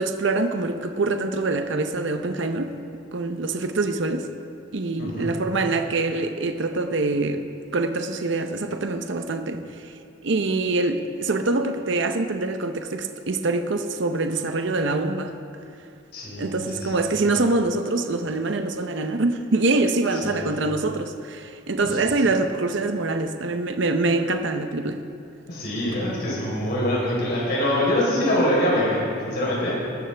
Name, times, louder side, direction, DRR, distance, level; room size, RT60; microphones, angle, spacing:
voice 1, 0.0-2.7 3.1-4.3 4.7-7.4 7.7-9.7 10.2-15.3 16.4-25.0, right 3 dB, 60° right, 7 dB, 0.7 m, -24 dB
voice 2, 5.0-5.3 16.1-17.1 20.1-20.6 21.8-22.0 25.5-29.8, left 1 dB, 50° left, -6 dB, 4.0 m, -24 dB
18.0 x 13.5 x 3.4 m, 2.5 s
head